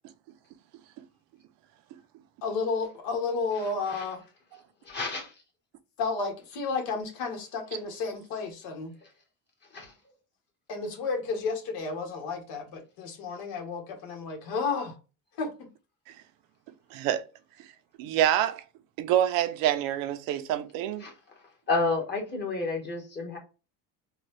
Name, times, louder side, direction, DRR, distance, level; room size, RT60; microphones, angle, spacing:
voice 1, 2.4-4.2 6.0-8.9 10.7-14.9 15.4-15.5, left 4 dB, 75° left, 1.3 m, -32 dB
voice 2, 4.8-5.3 9.7-9.9 21.0-21.1 21.7-23.4, left 3 dB, 30° left, 1.4 m, -30 dB
voice 3, 16.9-17.2 18.0-18.6 19.0-21.1, right 11 dB, 75° right, 0.6 m, -26 dB
3.8 x 2.3 x 3.2 m
cardioid pair, 135°, 35 cm